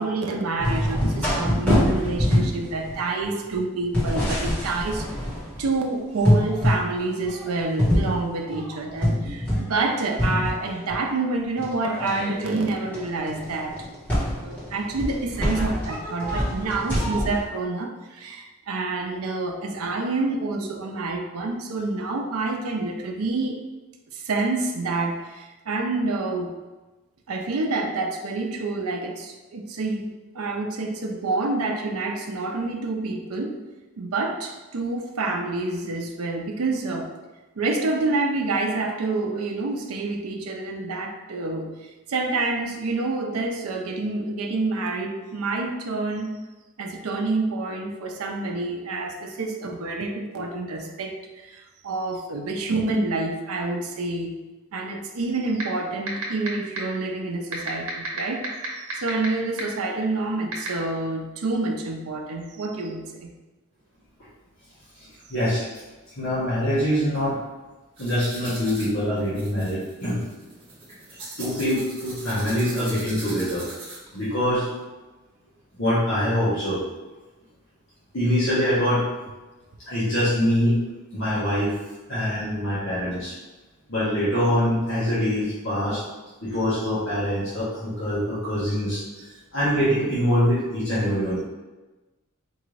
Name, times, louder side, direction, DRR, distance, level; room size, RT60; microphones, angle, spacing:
voice 1, 0.0-5.1 5.6-13.9 14.4-23.6 24.1-26.5 27.3-30.1 30.3-33.6 34.0-37.1 37.6-46.3 46.8-54.3 54.7-58.4 58.7-63.3 71.3-71.4, right 3 dB, 90° right, 2 dB, 0.5 m, -28 dB
sound 1, 0.6-5.8 6.2-6.8 7.2-9.9 10.2-11.0 11.6-17.4, equal, 10° left, 1.2 m, -25 dB
sound 2, 55.6-55.7 56.1-56.5 56.8-56.9 57.5-59.3 59.6-59.7 60.5-60.7, right 5 dB, 70° right, 0.9 m, -28 dB
voice 2, 65.0-65.6 66.2-67.4 68.0-70.3 71.4-73.6 74.1-74.7 75.8-76.8 78.1-79.0 79.8-80.8 81.1-81.7 82.1-83.3 83.9-86.0 86.4-89.0 89.5-91.4, equal, 65° left, -11 dB, 1.1 m, -24 dB
sound 3, 68.0-74.2, right 2 dB, 25° right, 1.0 m, -40 dB
4.5 x 2.5 x 3.1 m, 1.2 s
head